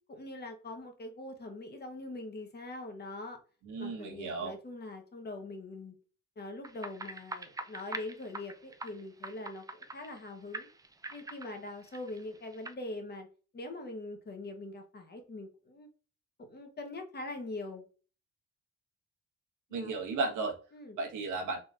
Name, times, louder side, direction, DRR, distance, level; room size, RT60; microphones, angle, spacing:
voice 1, 0.1-3.4 3.8-6.0 6.4-9.7 9.9-10.7 11.1-13.3 13.5-15.9 16.4-17.9 19.7-20.0 20.7-21.0, left 2 dB, 35° left, 5 dB, 1.1 m, -43 dB
voice 2, 3.6-4.6 19.7-20.6 21.0-21.6, right 3 dB, 80° right, 0 dB, 1.3 m, -34 dB
sound 1, 6.6-10.3 10.5-12.7, right 2 dB, 10° right, 0.4 m, -44 dB
4.0 x 3.0 x 2.5 m, 0.36 s
cardioid pair, 90°, 30 cm